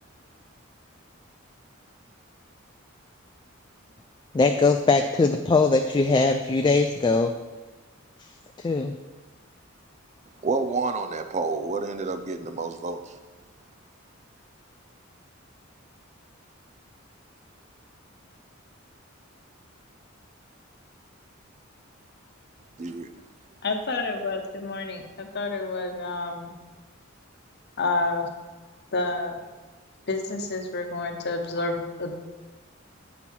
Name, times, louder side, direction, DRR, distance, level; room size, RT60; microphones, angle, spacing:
voice 1, 4.3-7.3 8.6-8.9, left 3 dB, 20° left, 5 dB, 0.3 m, -21 dB
voice 2, 10.4-13.1 22.8-23.1, right 3 dB, 35° right, 8 dB, 0.5 m, -29 dB
voice 3, 23.6-26.6 27.8-28.3 28.9-29.4 30.1-32.1, left 3 dB, 55° left, 4 dB, 0.9 m, -29 dB
8.3 x 4.5 x 5.6 m, 1.2 s
head